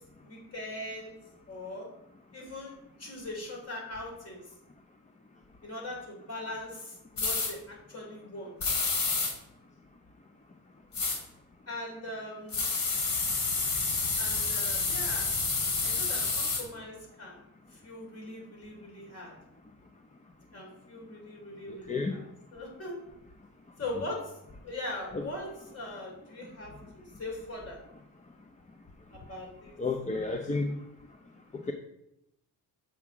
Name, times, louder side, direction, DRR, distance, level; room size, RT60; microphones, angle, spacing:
voice 1, 0.2-1.1 1.5-1.9 2.3-4.4 5.6-8.8 11.7-12.6 14.2-15.3 15.8-17.4 17.7-19.3 20.5-22.2 22.5-23.0 23.8-24.3 24.6-27.8 29.1-29.8, left 1 dB, 40° left, -1 dB, 3.4 m, -41 dB
sound 1, 7.2-7.5 8.6-9.3 10.9-11.2 12.5-16.6, left 4 dB, 65° left, 2.7 m, -29 dB
voice 2, 29.8-30.8 31.5-31.7, left 3 dB, 20° left, 4 dB, 0.6 m, -31 dB
7.3 x 5.5 x 4.8 m, 0.83 s
cardioid pair, 115°, 37 cm